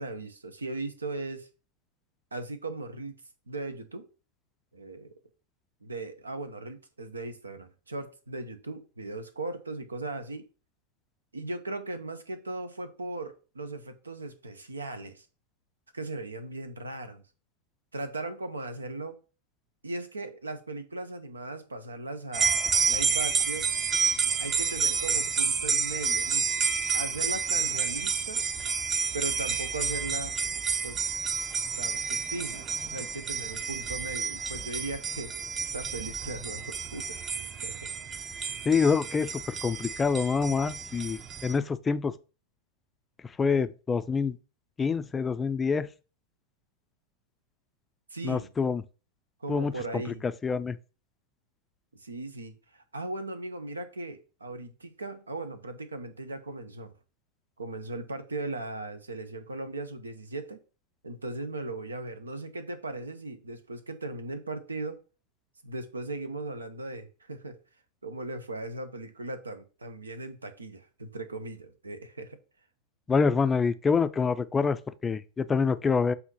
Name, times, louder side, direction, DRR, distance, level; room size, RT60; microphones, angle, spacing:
voice 1, 0.0-1.5 2.3-3.1 3.5-4.0 4.7-5.1 5.8-10.5 11.3-15.3 15.9-17.2 17.9-19.2 19.8-22.5 22.9-23.7 24.4-26.5 26.9-28.4 29.1-30.3 30.8-31.0 31.8-37.2 37.6-37.9 48.1-48.5 49.4-50.2 51.9-56.9 57.6-60.6 61.0-65.0 65.6-67.6 68.0-72.4, right 2 dB, 75° right, 0.8 m, -38 dB
sound 1, 22.3-41.6, right 5 dB, 25° right, 0.7 m, -30 dB
voice 2, 38.7-42.1 43.4-44.4 44.8-45.9 48.2-48.8 49.5-50.8 73.1-76.1, left 5 dB, 15° left, 0.5 m, -26 dB
7.9 x 2.8 x 5.5 m
figure-of-eight pair, 90°, 0 cm